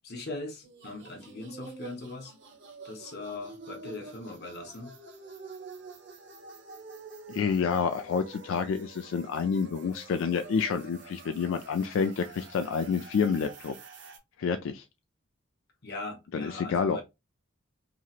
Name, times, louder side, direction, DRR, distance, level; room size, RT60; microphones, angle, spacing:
voice 1, 0.0-2.3 2.8-5.0 15.8-17.0, left 2 dB, 55° left, 0.9 m, -40 dB
sound 1, 0.6-14.2, right 4 dB, 60° right, 0.8 m, -48 dB
voice 2, 7.3-13.7 14.4-14.8 16.3-17.0, left 6 dB, 80° left, 0.3 m, -28 dB
2.9 x 2.8 x 2.4 m
head